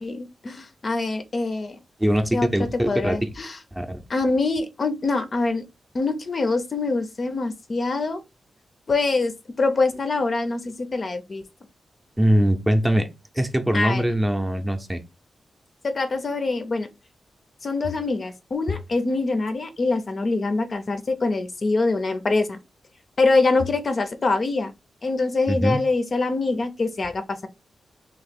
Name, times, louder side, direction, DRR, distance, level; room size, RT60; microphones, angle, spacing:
voice 1, 0.0-1.8 2.3-2.5 2.9-3.6 4.1-5.6 5.9-8.2 8.9-9.3 9.6-11.4 13.7-14.0 15.8-16.9 17.6-22.6 23.2-24.7 25.0-27.5, left 3 dB, 40° left, 0.5 m, -24 dB
voice 2, 2.0-3.2 3.7-4.0 12.2-13.1 13.3-15.0 25.5-25.8, equal, 10° right, 0.6 m, -22 dB
2.9 x 2.9 x 4.2 m
wide cardioid pair, 130°, 0 cm